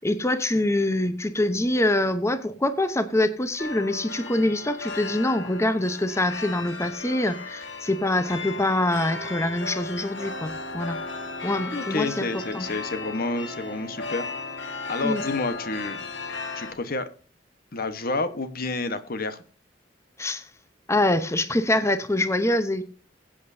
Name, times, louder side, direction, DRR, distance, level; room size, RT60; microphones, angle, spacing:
voice 1, 0.0-11.0 11.4-12.3 12.5-12.7 15.0-15.2 20.2-20.5 20.9-22.8, left 1 dB, 15° left, 0.8 m, -25 dB
sound 1, 3.6-16.7, left 3 dB, 80° left, 1.9 m, -35 dB
voice 2, 11.7-14.3 14.9-16.1 16.5-17.1 17.7-19.4, left 3 dB, 55° left, 1.2 m, -29 dB
20.5 x 8.7 x 2.7 m
head